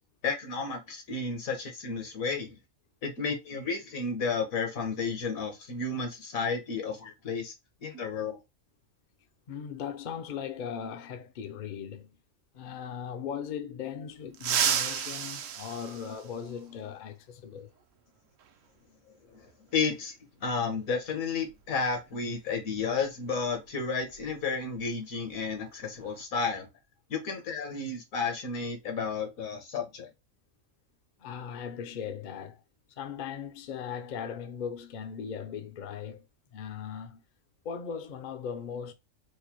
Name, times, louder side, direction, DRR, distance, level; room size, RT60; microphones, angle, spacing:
voice 1, 0.2-2.6 3.0-7.5 7.8-8.4 19.3-19.4 19.7-20.1 20.4-26.7 27.1-30.1, left 4 dB, 80° left, 1.5 m, -32 dB
voice 2, 9.5-12.2 12.5-17.7 31.2-32.6 33.0-36.3 36.5-37.2 37.6-38.9, left 7 dB, 60° left, 0.5 m, -38 dB
sound 1, 14.3-16.8 18.4-18.5 19.7-19.8 21.5-21.6 22.0-22.2 22.7-24.9 25.1-25.4 25.8-26.2, right 8 dB, 75° right, 0.9 m, -33 dB
4.7 x 2.0 x 2.9 m
omnidirectional pair, 1.4 m